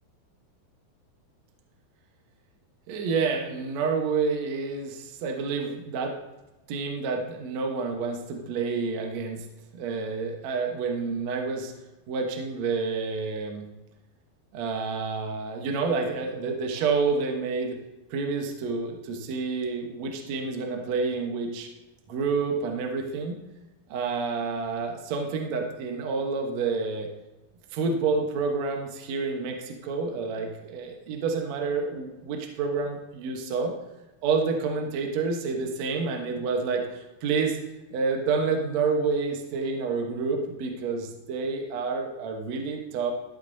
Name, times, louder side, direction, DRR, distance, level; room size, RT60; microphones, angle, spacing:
voice 1, 2.9-6.2 6.7-9.4 9.7-11.7 12.1-13.7 14.5-17.8 18.1-21.7 22.1-23.4 23.9-27.1 27.7-33.7 34.2-37.6 37.9-43.1, right 4 dB, 65° right, 2 dB, 1.9 m, -29 dB
14.5 x 8.3 x 2.7 m, 1.0 s
omnidirectional pair, 4.4 m